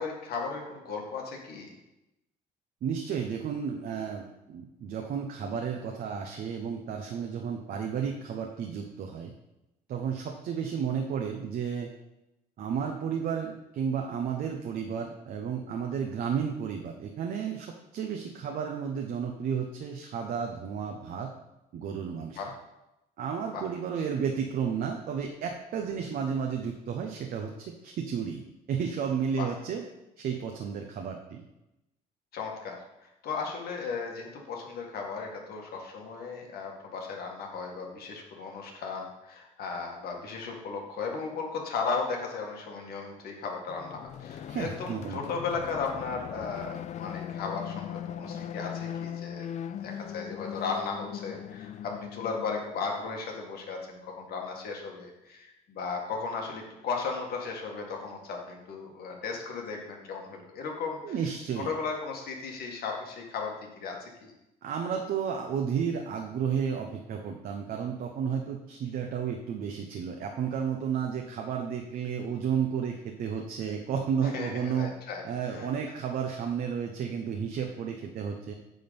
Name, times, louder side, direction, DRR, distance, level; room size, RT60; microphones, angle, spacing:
voice 1, 0.0-1.7 22.4-22.5 23.5-23.7 29.4-29.5 32.3-49.5 49.8-61.2 61.6-64.3 74.2-75.2 75.5-75.7, left 4 dB, 65° left, 1 dB, 1.9 m, -36 dB
voice 2, 2.8-9.3 9.9-11.9 12.6-21.3 21.7-22.4 23.2-28.4 28.7-29.9 30.2-31.4 44.5-45.2 61.0-61.7 64.6-74.9 75.2-78.5, right 7 dB, 60° right, 2 dB, 1.0 m, -32 dB
sound 1, 43.7-52.9, left 9 dB, 45° left, 0.4 m, -39 dB
9.4 x 3.9 x 7.0 m, 0.93 s
cardioid pair, 110°, 17 cm